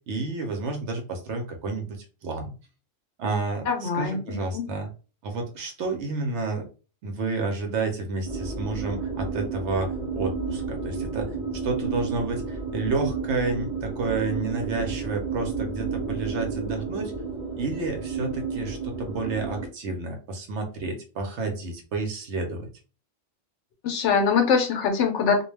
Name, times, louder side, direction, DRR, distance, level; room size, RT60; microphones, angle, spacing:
voice 1, 0.1-2.5 3.2-4.9 5.2-6.6 7.0-11.3 11.6-17.1 17.6-22.7, right 3 dB, 75° right, 3 dB, 0.9 m, -30 dB
voice 2, 3.7-4.7 23.8-25.4, left 5 dB, 80° left, 4 dB, 0.9 m, -23 dB
sound 1, 8.2-19.7, right 4 dB, 35° right, 0.7 m, -31 dB
2.2 x 2.2 x 3.1 m, 0.35 s
omnidirectional pair, 1.2 m